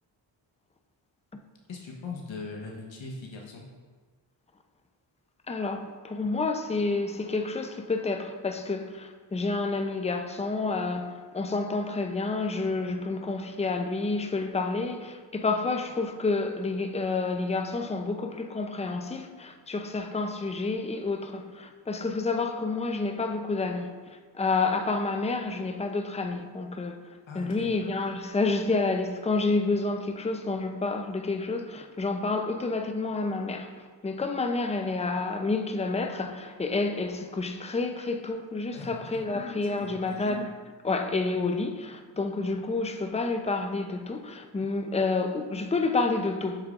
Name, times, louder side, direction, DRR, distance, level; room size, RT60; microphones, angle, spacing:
voice 1, 1.7-3.6 27.3-27.7 38.7-39.2 39.8-40.4, left 4 dB, 65° left, 1.3 m, -40 dB
voice 2, 5.5-27.0 27.3-33.7 34.0-40.5 40.8-46.7, left 3 dB, 15° left, 0.6 m, -29 dB
7.8 x 7.0 x 2.5 m
cardioid pair, 50°, 49 cm